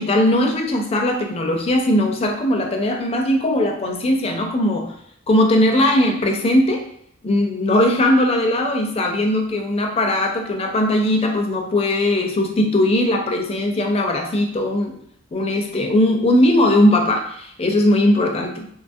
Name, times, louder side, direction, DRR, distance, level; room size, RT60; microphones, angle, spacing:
voice 1, 0.0-4.9 5.3-6.8 7.2-14.9 15.3-18.7, left 1 dB, 30° left, 3 dB, 0.4 m, -19 dB
2.8 x 2.3 x 2.6 m, 0.67 s
head